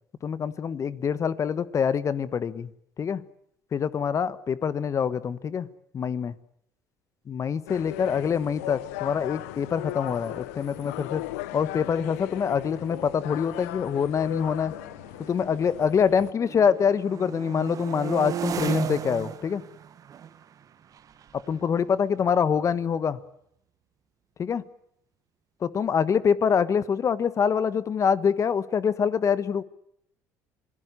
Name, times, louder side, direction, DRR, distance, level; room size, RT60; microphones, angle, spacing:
voice 1, 0.2-2.7 3.0-3.2 3.7-5.7 5.9-6.3 7.3-11.2 11.5-14.7 15.2-19.6 21.3-23.2 24.4-24.6 25.6-29.6, left 7 dB, 40° left, 15 dB, 1.3 m, -25 dB
sound 1, 7.7-16.3, left 17 dB, 90° left, 0.9 m, -38 dB
sound 2, 10.5-10.6 10.8-11.2 12.0-15.9 16.2-22.9, right 8 dB, 50° right, 1.8 m, -37 dB
27.0 x 17.5 x 8.3 m, 0.73 s
supercardioid pair, 80°, 8 cm